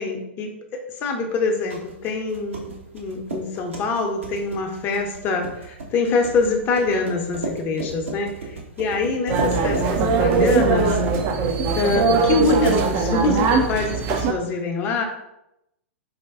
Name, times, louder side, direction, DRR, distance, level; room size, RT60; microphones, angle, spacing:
voice 1, 0.0-11.0 11.8-15.1, left 4 dB, 30° left, 3 dB, 0.8 m, -24 dB
sound 1, 1.4-12.4, right 3 dB, 70° right, 1.1 m, -36 dB
sound 2, 9.3-14.3, right 4 dB, 35° right, 0.5 m, -21 dB
4.9 x 2.3 x 3.5 m, 0.85 s
figure-of-eight pair, 105°, 7 cm